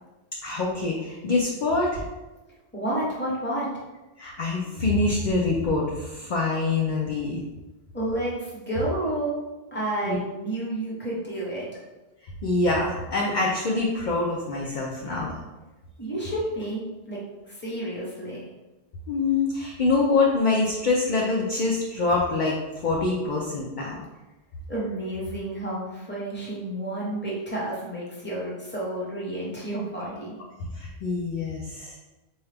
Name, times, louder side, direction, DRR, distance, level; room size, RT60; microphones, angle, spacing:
voice 1, 0.4-2.0 4.2-7.4 10.0-10.2 12.4-15.4 19.1-24.0 30.7-32.0, left 3 dB, 55° left, -3 dB, 0.6 m, -25 dB
voice 2, 2.7-3.7 7.9-9.4 9.7-11.8 16.0-17.2 17.5-18.4 24.7-30.3, right 1 dB, 10° left, -5 dB, 0.9 m, -30 dB
4.2 x 2.3 x 3.3 m, 1.1 s
omnidirectional pair, 1.1 m